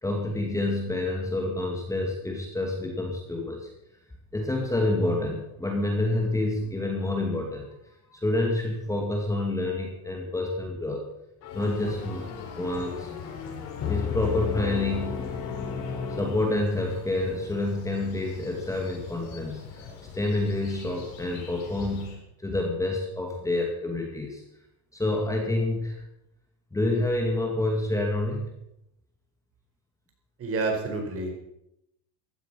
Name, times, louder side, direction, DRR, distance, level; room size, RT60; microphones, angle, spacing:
voice 1, 0.0-3.7 4.3-7.8 8.1-11.1 11.5-12.3 12.5-13.1 13.9-15.2 16.2-19.9 20.1-24.4 24.9-26.1 26.7-28.5, left 2 dB, 10° left, 1 dB, 2.3 m, -28 dB
sound 1, 11.4-22.2, left 7 dB, 75° left, 7.0 m, -44 dB
sound 2, 11.4-17.0, left 7 dB, 40° left, 3.2 m, -34 dB
voice 2, 30.4-31.3, right 3 dB, 35° right, 3 dB, 4.6 m, -28 dB
15.5 x 12.5 x 5.8 m, 0.82 s
cardioid pair, 145°, 39 cm